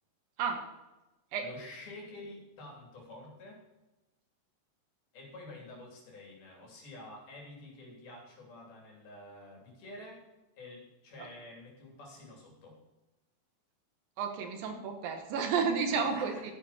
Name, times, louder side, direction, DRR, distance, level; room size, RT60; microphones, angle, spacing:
voice 1, 1.4-3.6 5.1-10.2 10.6-12.8 15.9-16.4, left 2 dB, 70° left, -1 dB, 5.1 m, -49 dB
voice 2, 14.2-16.4, right 5 dB, 70° right, 5 dB, 2.7 m, -31 dB
14.0 x 9.4 x 4.3 m, 1.1 s
omnidirectional pair, 4.6 m